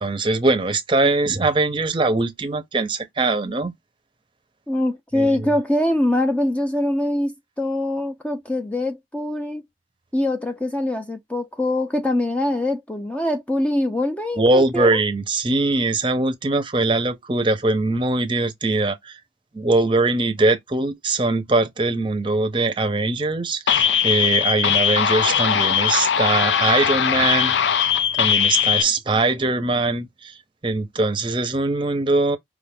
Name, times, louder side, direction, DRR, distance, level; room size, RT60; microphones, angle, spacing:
voice 1, 0.0-3.7 5.1-5.5 14.4-19.2 19.5-27.9 28.2-30.4 30.6-32.4, right 2 dB, 30° right, 0.7 m, -22 dB
voice 2, 4.7-9.6 10.1-15.0, left 1 dB, 10° left, 0.5 m, -23 dB
sound 1, 23.7-28.8, left 8 dB, 85° left, 0.4 m, -20 dB
4.9 x 2.5 x 3.5 m
head